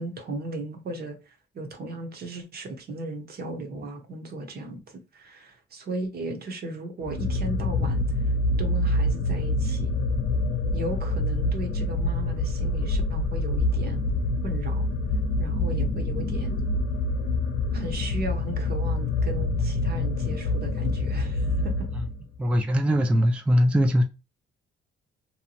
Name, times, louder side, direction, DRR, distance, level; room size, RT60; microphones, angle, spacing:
voice 1, 0.0-9.9 10.7-14.1 14.4-14.9 15.4-16.7 17.7-21.9, right 2 dB, 50° right, 0.9 m, -36 dB
sound 1, 7.0-22.4, left 2 dB, 70° left, 0.7 m, -26 dB
voice 2, 22.4-24.0, equal, 5° right, 0.3 m, -21 dB
2.8 x 2.2 x 2.8 m
cardioid pair, 90°, 20 cm